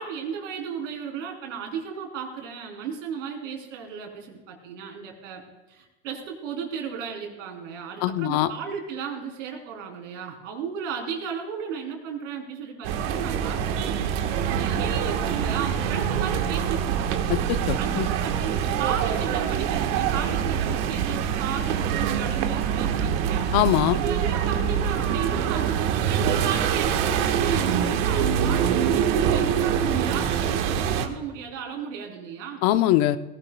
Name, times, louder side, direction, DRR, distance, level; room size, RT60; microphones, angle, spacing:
voice 1, 0.0-5.4 5.7-17.1 17.8-23.5 23.9-32.6, right 7 dB, 85° right, 1 dB, 3.8 m, -34 dB
voice 2, 8.0-8.5 17.3-18.1 23.5-24.0 32.6-33.2, left 14 dB, 60° left, 11 dB, 0.9 m, -22 dB
sound 1, 12.8-31.1, right 8 dB, 70° right, 1.5 m, -25 dB
18.5 x 16.5 x 2.3 m, 1.1 s
supercardioid pair, 120°, 37 cm